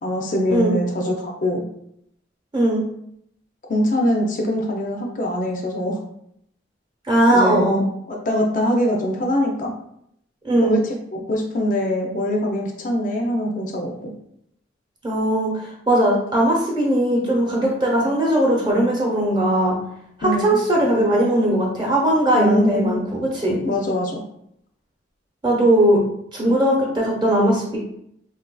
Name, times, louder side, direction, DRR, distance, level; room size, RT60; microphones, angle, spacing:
voice 1, 0.0-1.6 3.7-6.0 7.3-7.8 8.1-9.7 10.6-14.1 20.2-20.6 22.3-23.1 23.6-24.2, equal, 45° left, 1 dB, 0.5 m, -23 dB
voice 2, 7.1-7.8 10.4-10.8 15.0-19.7 20.2-23.6 25.4-26.0 26.3-27.8, right 1 dB, 25° right, -3 dB, 0.9 m, -19 dB
3.7 x 2.5 x 2.3 m, 0.73 s
head